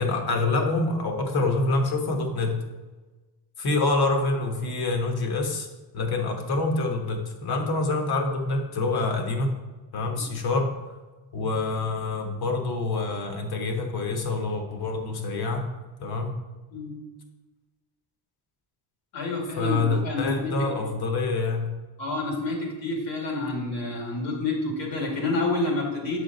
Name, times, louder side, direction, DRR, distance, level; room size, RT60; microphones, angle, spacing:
voice 1, 0.0-2.6 3.6-5.7 5.9-9.5 9.9-10.7 11.3-15.7 16.0-16.4 19.6-21.7, left 3 dB, 55° left, 3 dB, 1.3 m, -26 dB
voice 2, 19.1-20.7 22.0-26.2, left 2 dB, 80° left, 0 dB, 2.2 m, -29 dB
7.5 x 4.9 x 4.0 m, 1.2 s
cardioid pair, 105°, 43 cm